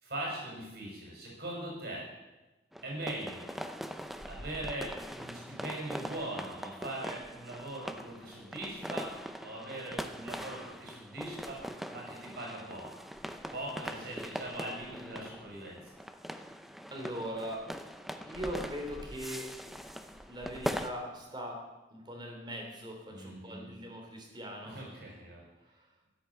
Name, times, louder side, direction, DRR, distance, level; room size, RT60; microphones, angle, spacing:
voice 1, 0.0-2.1 2.8-3.5 4.2-9.1 9.4-11.6 11.9-13.1 13.5-16.0 23.1-23.7 24.6-25.4, right 1 dB, 60° right, -2 dB, 5.6 m, -41 dB
sound 1, 2.7-20.9, equal, ahead, 0.6 m, -42 dB
voice 2, 16.9-17.7 18.2-19.6 20.3-21.6 21.9-24.9, equal, 25° right, 2 dB, 3.0 m, -40 dB
13.0 x 10.0 x 7.2 m, 1.1 s
head